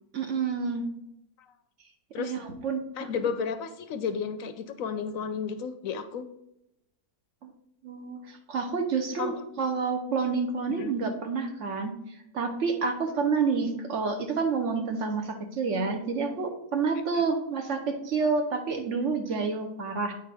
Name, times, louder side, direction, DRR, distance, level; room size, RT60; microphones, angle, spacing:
voice 1, 0.1-0.9 2.2-3.1 7.4-7.5 7.8-11.9 12.3-20.1, right 4 dB, 60° right, 5 dB, 1.1 m, -29 dB
voice 2, 3.0-6.3 9.2-9.3 10.8-11.0 17.1-17.2, left 6 dB, 70° left, 10 dB, 0.9 m, -32 dB
8.4 x 5.1 x 3.4 m, 0.83 s
omnidirectional pair, 1.6 m